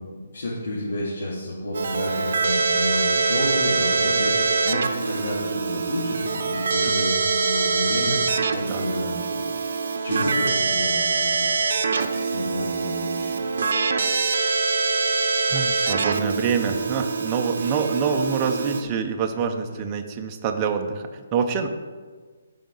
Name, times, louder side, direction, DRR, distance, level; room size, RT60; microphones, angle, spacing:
voice 1, 0.0-9.5 10.0-11.5 12.3-13.5 19.7-19.8, left 1 dB, 75° left, -7 dB, 2.3 m, -30 dB
Keyboard (musical), 1.7-18.8, right 4 dB, 55° right, 0.7 m, -24 dB
voice 2, 15.5-21.7, right 6 dB, 15° right, 4 dB, 0.5 m, -26 dB
14.0 x 5.0 x 3.9 m, 1.4 s
hypercardioid pair, 175°, 0 cm